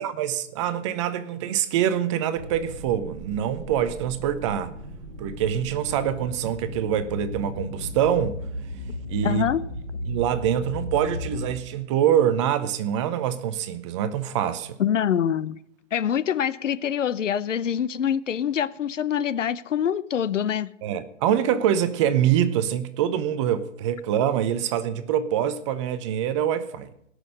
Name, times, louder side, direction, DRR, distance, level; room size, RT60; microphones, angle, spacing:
voice 1, 0.0-4.7 5.2-8.4 9.1-9.5 10.1-14.8 20.8-26.9, right 10 dB, 25° right, 0.7 m, -25 dB
sound 1, 2.4-11.5, left 1 dB, ahead, 4.5 m, -36 dB
voice 2, 9.2-9.6 14.8-15.6 15.9-20.7, left 9 dB, 85° left, 0.7 m, -25 dB
17.5 x 6.3 x 6.5 m
hypercardioid pair, 140°, 37 cm